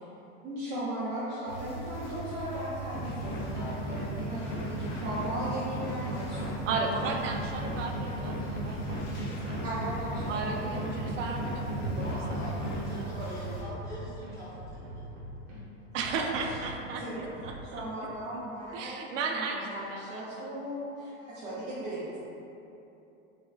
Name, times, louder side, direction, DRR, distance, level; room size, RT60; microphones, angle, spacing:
voice 1, 0.4-6.5 9.6-11.0 13.2-13.3 16.1-16.6 17.0-17.3 17.6-19.0 19.3-22.2, right 1 dB, 20° right, -11 dB, 0.3 m, -37 dB
sound 1, 1.5-13.6, right 4 dB, 75° left, 0.9 m, -39 dB
sound 2, 2.9-12.9, left 2 dB, 35° left, 0.5 m, -37 dB
voice 2, 3.5-4.4 12.0-15.1, equal, 10° left, -11 dB, 0.9 m, -43 dB
voice 3, 6.7-9.6 10.3-13.0 15.9-18.4 18.7-20.5, right 4 dB, 80° right, 2 dB, 0.5 m, -35 dB
sound 3, 7.3-8.0 8.4-9.2 9.8-10.5 10.9-13.0 13.4-15.6 16.0-17.7, right 1 dB, 50° right, 1.2 m, -44 dB
3.5 x 3.2 x 2.3 m, 2.9 s
supercardioid pair, 145°, 37 cm